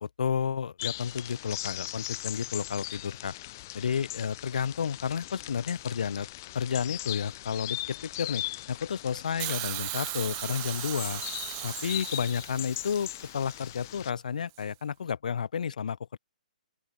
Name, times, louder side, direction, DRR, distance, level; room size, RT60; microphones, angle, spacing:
voice 1, 0.0-3.3 3.7-6.3 6.5-11.2 11.6-16.2, left 7 dB, 60° left, 0.7 m, -31 dB
sound 1, 0.8-14.1, left 17 dB, 20° left, 0.5 m, -39 dB
Hiss, 9.4-13.5 14.6-14.7, right 40 dB or more, 15° right, 1.0 m, -37 dB
open air
hypercardioid pair, 180°, 5 cm